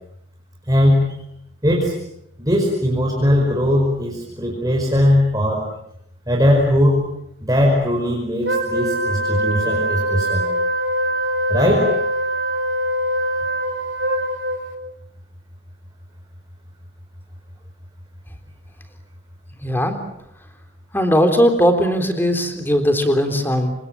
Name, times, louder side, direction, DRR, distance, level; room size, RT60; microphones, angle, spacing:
voice 1, 0.7-1.2 1.6-1.9 2.4-5.7 6.3-7.1 7.4-10.5 11.5-11.9, left 1 dB, 20° right, -1 dB, 5.1 m, -19 dB
Wind instrument woodwind instrument, 8.4-14.8, equal, 55° right, 4.1 m, -23 dB
voice 2, 19.6-20.0 20.9-23.7, equal, 10° left, 6 dB, 3.6 m, -18 dB
29.0 x 26.5 x 7.5 m, 0.77 s
head